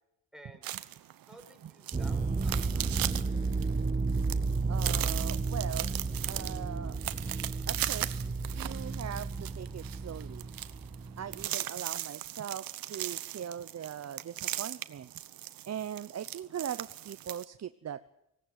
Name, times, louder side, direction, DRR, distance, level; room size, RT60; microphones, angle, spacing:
voice 1, 0.3-0.7 1.3-3.2, right 1 dB, ahead, 4 dB, 5.0 m, -54 dB
sound 1, 0.6-17.4, right 13 dB, 80° right, 1.1 m, -38 dB
sound 2, 1.9-11.5, right 3 dB, 20° right, 1.6 m, -33 dB
voice 2, 4.7-5.9 6.2-7.0 7.7-10.4 11.2-15.1 15.7-18.1, right 9 dB, 50° right, 12 dB, 0.9 m, -40 dB
19.0 x 17.0 x 9.5 m, 0.84 s
cardioid pair, 90°, 34 cm